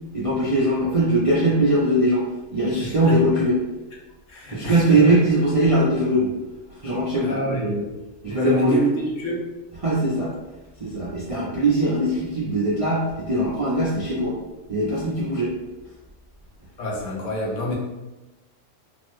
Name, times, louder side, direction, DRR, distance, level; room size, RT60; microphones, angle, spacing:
voice 1, 0.1-2.3 2.5-3.6 4.5-6.3 6.8-7.8 8.2-8.8 9.8-10.3 10.8-14.4 14.7-15.6, right 1 dB, 50° right, -7 dB, 0.4 m, -21 dB
voice 2, 2.8-3.2 4.3-5.0 7.2-7.8 8.2-8.9 9.2-9.4 16.8-17.7, equal, 75° left, -3 dB, 1.1 m, -28 dB
3.4 x 2.1 x 3.0 m, 1.0 s
omnidirectional pair, 1.3 m